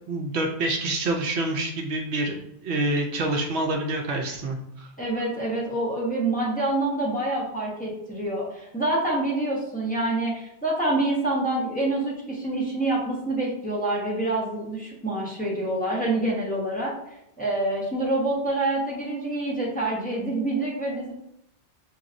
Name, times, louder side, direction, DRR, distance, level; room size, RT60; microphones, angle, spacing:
voice 1, 0.1-2.3 2.6-4.9, right 2 dB, 70° right, 2 dB, 0.9 m, -27 dB
voice 2, 5.0-16.9 17.4-21.1, right 2 dB, 10° left, -5 dB, 1.0 m, -26 dB
6.0 x 3.0 x 2.5 m, 0.80 s
omnidirectional pair, 1.2 m